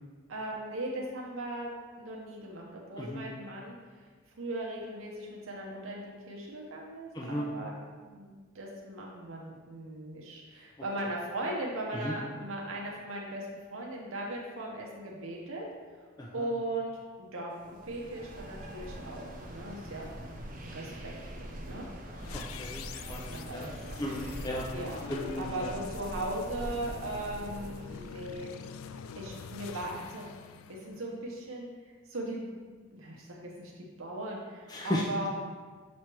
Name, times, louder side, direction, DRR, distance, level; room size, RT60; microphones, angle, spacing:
voice 1, 0.3-1.7 2.0-4.1 4.4-7.7 8.1-15.6 16.0-16.1 16.3-20.2 20.6-21.1 21.4-21.9 23.0-24.0 24.7-25.0 25.4-28.5 29.2-30.3 30.7-31.7 32.1-32.4 32.9-35.3, right 1 dB, 80° right, -2 dB, 0.9 m, -38 dB
voice 2, 7.1-7.5 11.9-12.1 16.2-16.5 22.3-23.7 24.0-24.7 25.1-25.7 34.7-35.0, left 1 dB, 20° left, -3 dB, 0.5 m, -35 dB
sound 1, 17.6-28.4, right 1 dB, 40° right, 0.6 m, -43 dB
sound 2, 22.2-31.4, left 7 dB, 80° left, 0.3 m, -46 dB
7.1 x 3.2 x 4.5 m, 1.5 s
head